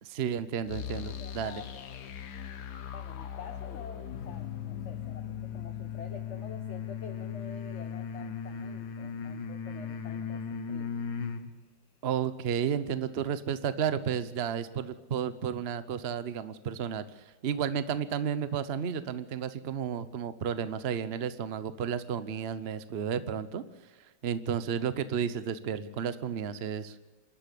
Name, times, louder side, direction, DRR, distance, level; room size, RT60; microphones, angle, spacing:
voice 1, 0.0-1.6 12.0-23.6 24.2-26.9, right 8 dB, 45° right, 13 dB, 0.9 m, -32 dB
sound 1, 0.6-7.5, left 8 dB, 70° left, 1.5 m, -42 dB
voice 2, 1.2-2.0 2.9-10.9, left 6 dB, 45° left, 5 dB, 1.3 m, -48 dB
Deep Humming Noise, 4.1-11.5, left 7 dB, 85° left, 1.9 m, -37 dB
27.5 x 12.0 x 8.4 m, 1.2 s
omnidirectional pair, 1.9 m